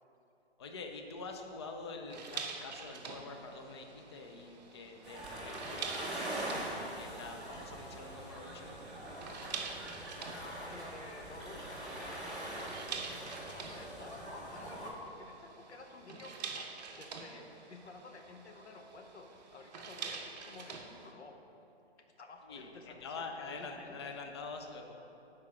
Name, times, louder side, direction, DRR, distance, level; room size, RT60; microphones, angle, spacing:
voice 1, 0.6-6.6 6.9-8.8 22.4-24.9, left 4 dB, 25° left, 4 dB, 0.4 m, -46 dB
sound 1, 2.1-21.1, right 5 dB, 40° right, 0.7 m, -47 dB
sound 2, 5.0-14.9, right 1 dB, ahead, 0.8 m, -43 dB
voice 2, 10.2-21.5 22.0-24.2, left 3 dB, 90° left, 4 dB, 1.0 m, -52 dB
sound 3, 11.4-14.4, left 1 dB, 70° left, 1.6 m, -58 dB
7.2 x 4.8 x 5.7 m, 2.9 s
hypercardioid pair, 145°, 33 cm